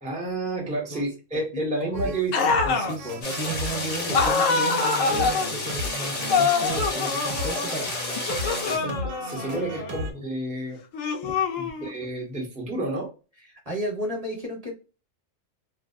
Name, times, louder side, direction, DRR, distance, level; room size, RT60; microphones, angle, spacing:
voice 1, 0.0-3.1 8.7-10.8 11.6-13.1, right 2 dB, 10° right, -3 dB, 0.4 m, -31 dB
voice 2, 0.7-1.1 1.3-2.1 2.9-7.9 9.5-9.7 11.2-11.3 13.5-14.7, right 1 dB, 30° right, 0 dB, 0.8 m, -34 dB
sound 1, 1.9-10.1, right 1 dB, 70° right, 0.9 m, -35 dB
sound 2, 2.3-2.9 4.1-5.5 6.3-7.8 8.3-10.0 10.9-12.0, left 4 dB, 75° left, 0.9 m, -25 dB
sound 3, 3.2-8.8, left 3 dB, 45° left, 0.7 m, -31 dB
2.6 x 2.0 x 2.4 m, 0.32 s
omnidirectional pair, 1.4 m